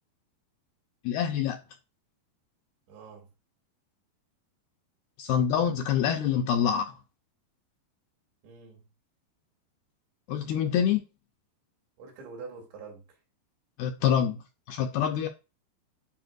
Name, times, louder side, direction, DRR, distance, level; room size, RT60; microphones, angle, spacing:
voice 1, 1.1-1.6 5.2-6.9 10.3-11.0 13.8-14.4 14.7-15.3, left 8 dB, 80° left, 2.3 m, -26 dB
voice 2, 2.9-3.3 8.4-8.9 12.0-13.2, right 4 dB, 80° right, 5.0 m, -45 dB
10.5 x 5.1 x 2.5 m
omnidirectional pair, 4.9 m